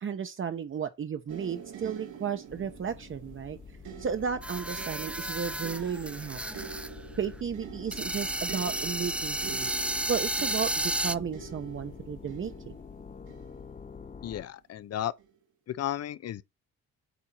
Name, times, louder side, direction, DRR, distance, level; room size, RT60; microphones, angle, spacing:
voice 1, 0.0-3.6 4.0-6.8 7.2-9.7 10.1-10.7 11.0-12.5, right 7 dB, 40° right, 0.9 m, -34 dB
sound 1, 1.3-14.4 15.2-15.4, right 8 dB, 80° right, 3.1 m, -47 dB
sound 2, 2.5-14.4, left 5 dB, 25° left, 0.7 m, -47 dB
sound 3, 4.4-6.9 7.2-7.3 7.9-11.1, right 1 dB, 5° right, 0.4 m, -32 dB
voice 2, 14.2-15.1 15.7-16.4, left 11 dB, 55° left, 0.8 m, -33 dB
8.3 x 4.3 x 4.3 m
cardioid pair, 90°, 30 cm